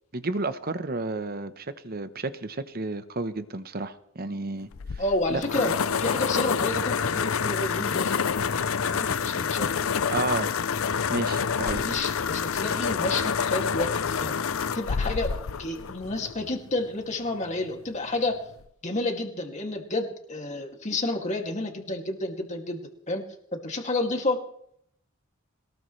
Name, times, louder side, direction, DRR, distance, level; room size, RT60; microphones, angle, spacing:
voice 1, 0.1-5.0 5.3-5.7 10.1-10.5 11.1-11.8, right 3 dB, 45° right, 11 dB, 1.0 m, -32 dB
sound 1, 4.7-16.6, left 6 dB, 70° left, 0.6 m, -27 dB
voice 2, 5.0-5.7 6.0-8.1 8.9-9.8 11.8-14.3 14.7-18.4 18.8-22.8 23.1-23.2 23.5-24.4, left 2 dB, 35° left, 3 dB, 2.5 m, -30 dB
22.0 x 20.0 x 3.3 m, 0.71 s
head